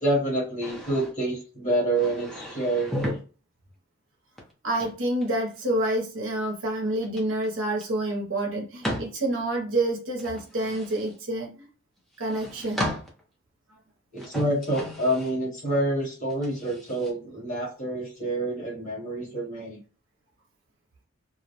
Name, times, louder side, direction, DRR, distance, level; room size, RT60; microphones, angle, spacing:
voice 1, 0.0-3.1 14.1-19.8, right 1 dB, 35° left, -3 dB, 1.2 m, -27 dB
sound 1, 0.6-1.1 1.9-3.2 4.4-5.6 7.0-7.5 7.8-7.9 8.8-9.2 10.2-11.2 12.1-13.2 14.2-15.4 16.3-17.1, equal, ahead, 0.5 m, -34 dB
voice 2, 4.6-11.7 12.2-12.9, right 1 dB, 65° right, 0 dB, 0.7 m, -28 dB
2.4 x 2.1 x 2.8 m, 0.35 s
head